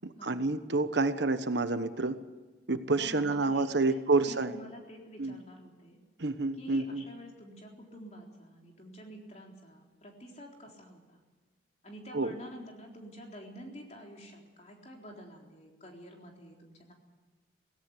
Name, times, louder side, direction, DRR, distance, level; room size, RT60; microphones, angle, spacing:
voice 1, 0.0-2.2 2.7-4.6 5.2-5.4 6.2-7.0 12.1-12.3, right 3 dB, 70° right, 10 dB, 1.2 m, -28 dB
voice 2, 2.9-6.0 6.6-11.2 11.8-16.9, equal, 35° left, 0 dB, 3.9 m, -48 dB
18.0 x 17.0 x 9.8 m, 1.3 s
head